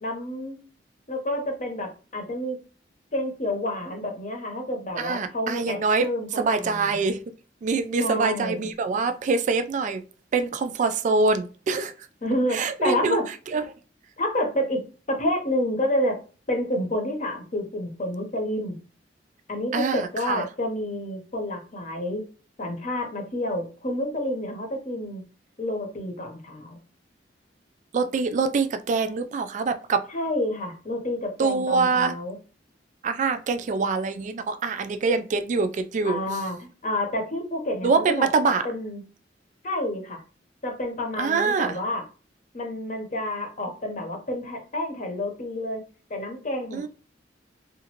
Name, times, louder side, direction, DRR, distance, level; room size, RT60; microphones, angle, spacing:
voice 1, 0.0-0.6 1.1-2.6 3.1-7.0 8.0-8.7 12.2-13.2 14.2-14.8 15.1-16.2 16.5-18.8 19.5-22.2 22.6-25.2 25.6-26.8 30.1-32.4 36.0-37.9 38.2-38.3 38.6-39.0 39.6-40.2 40.6-42.0 42.5-45.8 46.1-46.9, left 1 dB, 45° left, 0.8 m, -29 dB
voice 2, 5.0-6.1 6.4-7.2 7.6-10.0 10.3-11.9 12.5-13.2 13.5-13.6 19.7-20.4 27.9-30.1 31.4-32.2 33.0-36.2 37.8-38.7 41.2-41.8 46.7-46.9, right 4 dB, 45° right, 0.3 m, -24 dB
2.8 x 2.5 x 2.9 m
head